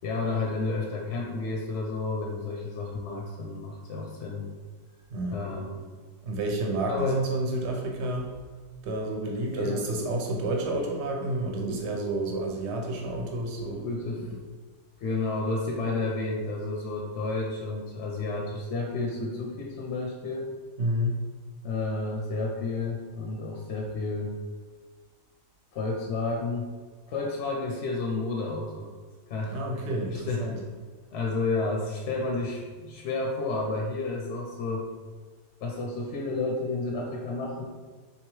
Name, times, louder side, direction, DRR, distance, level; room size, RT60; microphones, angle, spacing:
voice 1, 0.0-4.5 5.3-5.9 6.9-7.2 9.5-9.8 11.6-11.8 13.8-14.3 15.0-20.5 21.6-24.4 25.7-26.7 27.1-28.9 29.3-30.5 31.1-34.9 35.6-37.6, left 3 dB, 65° left, -1 dB, 0.8 m, -31 dB
voice 2, 6.2-8.3 8.8-13.9 14.2-14.3 20.8-21.2 29.5-30.6, right 2 dB, 60° right, 1 dB, 0.9 m, -30 dB
3.5 x 2.8 x 3.0 m, 1.4 s
omnidirectional pair, 1.5 m